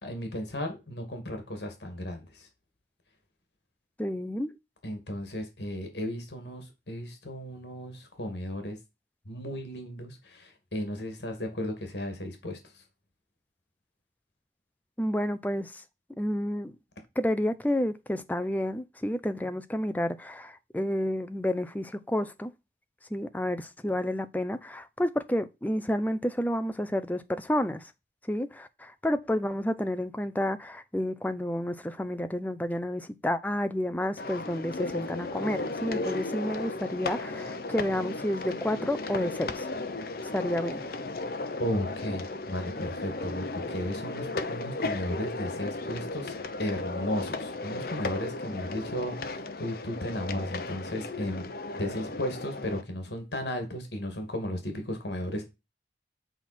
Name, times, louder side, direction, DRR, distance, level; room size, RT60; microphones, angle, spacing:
voice 1, 0.0-2.5 4.8-8.8 9.3-12.8 41.6-46.3 46.6-55.5, left 1 dB, 75° left, 2.3 m, -35 dB
voice 2, 4.0-4.5 15.0-15.8 16.2-16.7 17.2-22.5 23.1-27.9 28.3-39.7 40.2-40.8, left 1 dB, 10° left, 0.6 m, -30 dB
sound 1, 34.2-52.8, left 2 dB, 55° left, 0.8 m, -35 dB
8.0 x 4.4 x 4.3 m
head